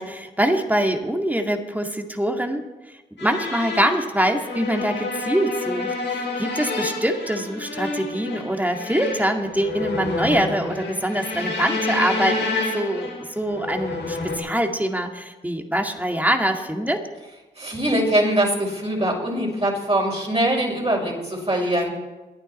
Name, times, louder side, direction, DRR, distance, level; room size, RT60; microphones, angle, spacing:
voice 1, 0.0-2.6 3.2-17.0, right 1 dB, 10° right, 3 dB, 2.1 m, -24 dB
sound 1, 3.2-14.4, left 3 dB, 75° left, 5.3 m, -29 dB
voice 2, 17.6-22.0, right 1 dB, 30° right, -2 dB, 5.8 m, -22 dB
22.5 x 9.2 x 4.3 m, 1.1 s
supercardioid pair, 40°, 19 cm